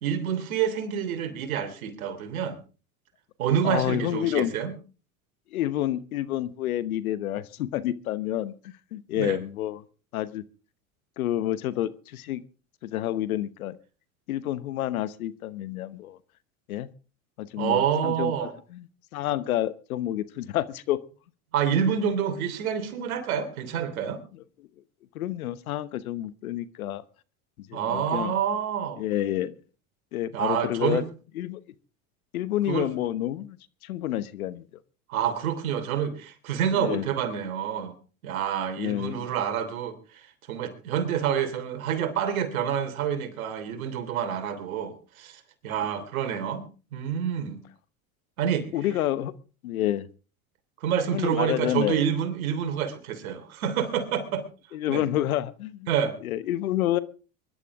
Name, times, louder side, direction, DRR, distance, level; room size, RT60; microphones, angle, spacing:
voice 1, 0.0-2.6 3.4-4.7 9.1-9.4 17.6-18.5 21.5-24.2 27.7-29.0 30.3-31.0 32.7-32.9 35.1-37.9 38.2-46.6 46.9-47.6 48.4-48.7 50.8-54.4 54.9-55.1 55.9-56.1, right 8 dB, 85° right, 8 dB, 3.3 m, -28 dB
voice 2, 3.6-4.5 5.5-9.8 10.1-10.4 11.2-12.4 12.8-13.8 14.3-16.2 16.7-16.9 17.4-18.9 19.1-21.0 24.3-24.4 25.1-27.0 27.6-28.4 29.0-29.6 30.1-31.1 31.3-31.6 32.3-33.6 33.8-34.7 36.7-37.1 38.8-39.3 48.7-49.3 49.6-50.1 51.1-52.0 54.7-55.9 56.2-57.0, left 13 dB, 85° left, 16 dB, 1.1 m, -29 dB
23.5 x 12.0 x 3.6 m, 0.36 s
hypercardioid pair, 90°, 41 cm